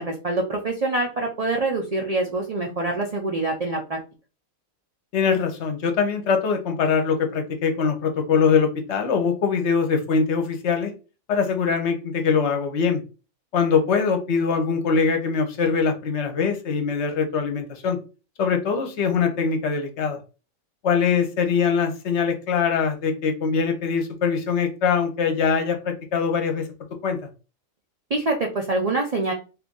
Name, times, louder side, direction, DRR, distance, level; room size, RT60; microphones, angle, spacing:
voice 1, 0.0-4.0 28.1-29.3, right 2 dB, 70° right, 1 dB, 0.3 m, -25 dB
voice 2, 5.1-10.9 11.3-13.0 13.5-18.0 18.4-20.2 20.8-26.7 27.0-27.2, left 5 dB, 60° left, 6 dB, 0.9 m, -22 dB
2.8 x 2.5 x 3.6 m, 0.32 s
omnidirectional pair, 1.4 m